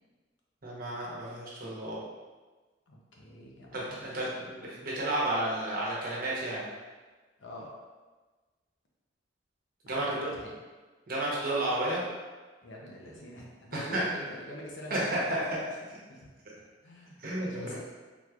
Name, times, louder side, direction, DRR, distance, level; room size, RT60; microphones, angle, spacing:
voice 1, 0.6-2.0 3.7-6.7 9.8-10.1 11.1-12.0 13.7-14.0 14.9-15.4 15.9-16.0 17.2-17.7, right 1 dB, 50° right, -6 dB, 0.9 m, -32 dB
voice 2, 2.9-4.5 7.4-7.8 9.9-10.6 12.6-15.3 16.1-16.3 16.8-17.8, equal, 75° left, -2 dB, 0.8 m, -45 dB
3.8 x 3.0 x 2.4 m, 1.3 s
head